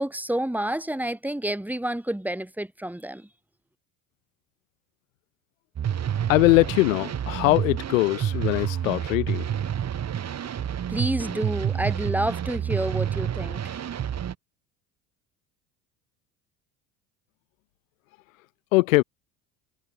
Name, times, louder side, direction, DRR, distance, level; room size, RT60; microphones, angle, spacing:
voice 1, 0.0-3.3 10.9-13.8, right 1 dB, 5° right, 5.1 m, -29 dB
sound 1, 5.8-14.3, right 9 dB, 40° right, 3.1 m, -29 dB
voice 2, 6.3-9.5 18.7-19.0, left 21 dB, 90° left, 1.3 m, -21 dB
supercardioid pair, 85°, 39 cm